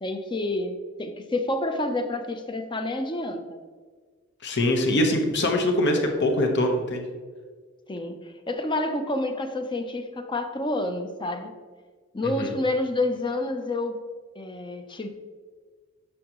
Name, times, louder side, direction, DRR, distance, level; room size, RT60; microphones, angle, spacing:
voice 1, 0.0-3.6 7.9-11.5 12.1-14.0 14.4-15.1, left 2 dB, 25° left, 7 dB, 0.6 m, -29 dB
voice 2, 4.4-7.1 12.2-12.5, left 1 dB, 55° left, 4 dB, 1.1 m, -23 dB
9.7 x 6.3 x 3.0 m, 1.5 s
head